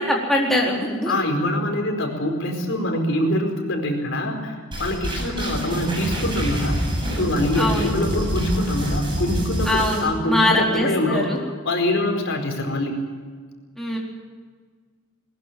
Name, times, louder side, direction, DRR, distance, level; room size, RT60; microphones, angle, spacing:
voice 1, 0.0-1.2 5.2-5.6 7.6-7.9 9.7-11.4 13.8-14.0, left 1 dB, ahead, -4 dB, 4.1 m, -23 dB
voice 2, 1.1-6.8 7.1-11.3 11.6-13.0, left 1 dB, 60° left, 3 dB, 4.7 m, -24 dB
sound 1, 4.7-10.0, equal, 25° right, 7.2 m, -26 dB
21.0 x 21.0 x 7.6 m, 1.5 s
head